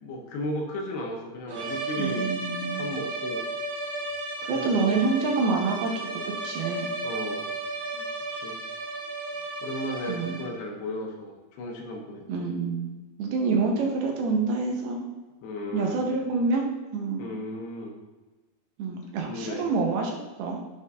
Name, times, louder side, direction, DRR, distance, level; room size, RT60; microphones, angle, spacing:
voice 1, 0.0-2.2 2.7-3.4 4.5-5.0 7.0-7.5 7.9-8.0 8.3-8.6 9.6-12.5 15.4-16.0 17.2-17.9 19.3-19.7, left 1 dB, 85° left, 1 dB, 3.1 m, -35 dB
sound 1, 1.5-10.7, right 2 dB, 55° right, 2.3 m, -34 dB
voice 2, 2.0-2.9 4.5-6.9 10.1-10.4 12.3-12.9 13.2-15.0 15.7-16.6 16.9-17.2 18.8-20.6, right 4 dB, 80° right, 1 dB, 2.8 m, -27 dB
10.5 x 5.6 x 2.6 m, 1.2 s
omnidirectional pair, 4.6 m